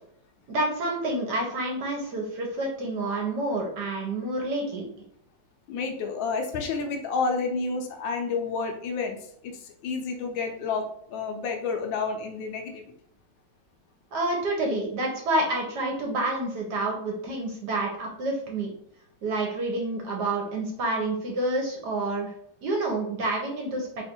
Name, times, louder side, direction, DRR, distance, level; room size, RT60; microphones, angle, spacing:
voice 1, 0.5-4.9 14.1-18.7 19.2-22.3 22.6-23.9, right 2 dB, 65° right, 0 dB, 1.2 m, -28 dB
voice 2, 5.7-9.2 9.4-9.6 9.8-12.8, left 4 dB, 75° left, 3 dB, 1.3 m, -30 dB
3.4 x 2.4 x 4.3 m, 0.68 s
omnidirectional pair, 2.2 m